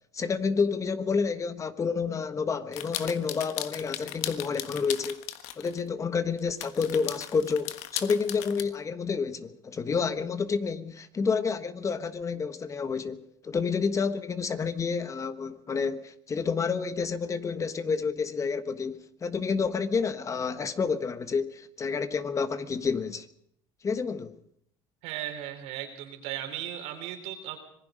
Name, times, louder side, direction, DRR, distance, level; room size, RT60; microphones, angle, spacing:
voice 1, 0.1-5.2 5.6-23.3 23.8-24.3, left 5 dB, 30° left, 1.3 m, -29 dB
sound 1, 2.7-5.8 6.4-8.6, left 13 dB, 75° left, 1.4 m, -37 dB
voice 2, 25.0-27.6, right 11 dB, 80° right, 4.0 m, -36 dB
25.5 x 19.5 x 5.2 m
supercardioid pair, 110°, 11 cm